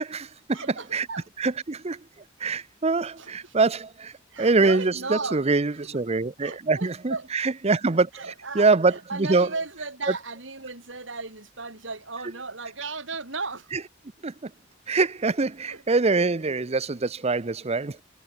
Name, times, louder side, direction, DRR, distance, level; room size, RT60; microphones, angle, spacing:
voice 1, 0.0-0.6 0.9-1.1 1.4-2.0 2.4-8.1 8.5-9.5 14.2-14.5 14.9-18.0, right 3 dB, 35° right, 0.7 m, -24 dB
voice 2, 0.5-1.3 3.2-3.5 4.3-5.5 5.9-6.0 6.4-7.3 8.1-13.7 15.7-15.8, right 3 dB, 75° right, 6.0 m, -35 dB
head